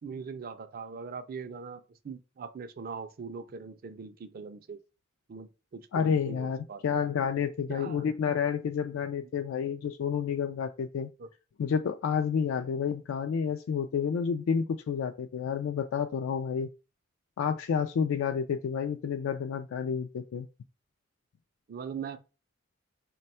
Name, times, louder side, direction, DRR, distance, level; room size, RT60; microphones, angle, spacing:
voice 1, 0.0-4.8 5.3-6.8 7.7-8.0 11.2-11.3 21.7-22.2, right 5 dB, 45° right, 0.4 m, -41 dB
voice 2, 5.9-11.1 11.6-16.7 17.4-20.5, left 7 dB, 80° left, 0.3 m, -30 dB
3.3 x 2.2 x 4.2 m
head